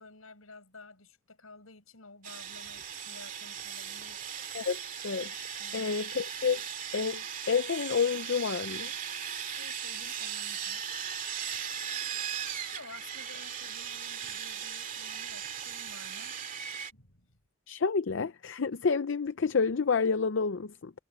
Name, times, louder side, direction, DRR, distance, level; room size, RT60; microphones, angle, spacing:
voice 1, 0.0-4.3 5.5-5.9 9.6-10.8 12.7-16.5 16.9-17.4, left 3 dB, 80° left, 7.3 m, -53 dB
Sawing, 2.2-16.9, right 8 dB, 40° right, 2.4 m, -38 dB
voice 2, 4.5-5.3 5.7-6.6 6.9-8.9 17.7-20.9, left 5 dB, 60° left, 0.5 m, -29 dB
head